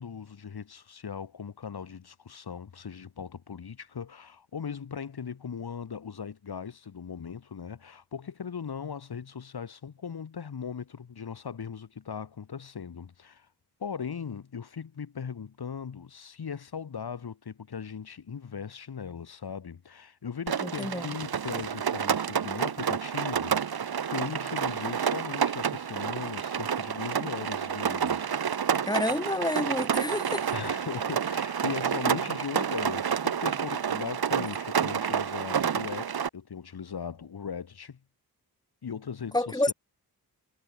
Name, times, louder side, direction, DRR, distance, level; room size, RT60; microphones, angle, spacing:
voice 1, 0.0-13.5 13.8-28.3 28.7-28.9 30.5-38.0 38.8-39.7, left 6 dB, 75° left, 7.6 m, -39 dB
Rain, 20.5-36.3, right 7 dB, 70° right, 2.1 m, -29 dB
voice 2, 20.6-21.1 28.9-30.5 34.4-34.5 39.3-39.7, left 1 dB, 10° left, 5.9 m, -29 dB
wide cardioid pair, 150°, 39 cm